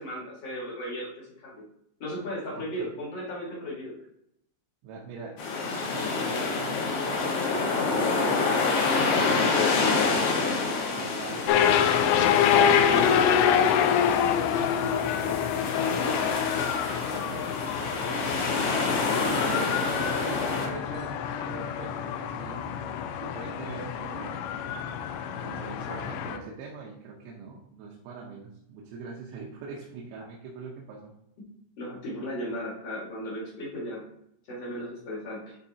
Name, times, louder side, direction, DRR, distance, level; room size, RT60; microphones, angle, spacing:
voice 1, 0.0-1.6 2.0-3.9 12.6-13.6 17.4-17.6 25.7-26.1 31.8-34.0 34.5-35.6, equal, 50° left, -5 dB, 1.9 m, -36 dB
voice 2, 2.5-2.9 4.8-5.4 5.8-7.4 7.9-10.4 11.0-12.2 12.9-13.0 13.9-16.4 17.1-17.5 18.5-21.2 21.5-22.7 23.2-24.4 25.4-31.1, right 4 dB, 80° right, -2 dB, 3.3 m, -42 dB
sound 1, 5.4-20.7, left 4 dB, 65° left, 2.9 m, -28 dB
sound 2, 11.5-26.4, left 8 dB, 85° left, 2.6 m, -26 dB
11.5 x 4.0 x 2.8 m, 0.76 s
omnidirectional pair, 5.4 m